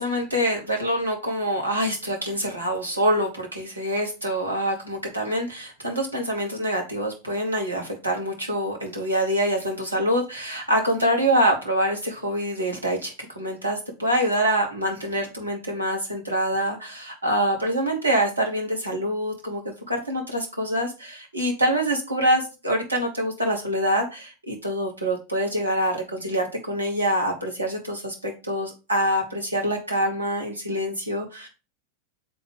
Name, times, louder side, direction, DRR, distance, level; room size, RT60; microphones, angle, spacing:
voice 1, 0.0-31.5, equal, 80° right, 1 dB, 1.6 m, -25 dB
6.8 x 3.9 x 3.6 m, 0.32 s
figure-of-eight pair, 90°, 0 cm